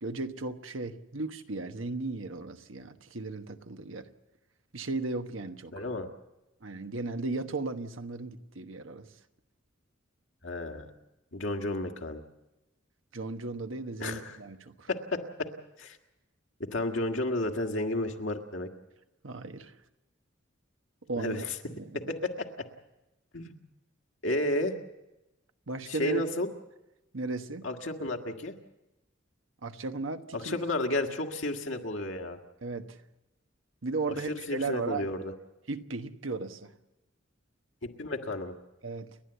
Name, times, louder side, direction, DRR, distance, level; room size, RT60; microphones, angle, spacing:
voice 1, 0.0-4.1 4.7-5.8 6.6-9.1 13.1-14.9 19.2-19.7 21.1-21.4 21.7-21.9 25.7-26.2 27.1-27.7 29.6-30.6 32.6-32.9 33.8-35.1 35.7-36.7 38.8-39.1, right 3 dB, 90° right, 7 dB, 1.2 m, -35 dB
voice 2, 5.7-6.1 10.4-10.9 11.3-12.2 14.0-14.4 14.9-15.5 15.8-16.0 16.6-18.7 21.2-21.6 22.1-22.5 23.3-23.6 24.2-24.7 25.9-26.5 27.6-28.5 30.3-32.4 34.1-35.3 37.8-38.6, left 2 dB, 70° left, 4 dB, 1.9 m, -32 dB
29.5 x 11.5 x 8.0 m, 0.98 s
head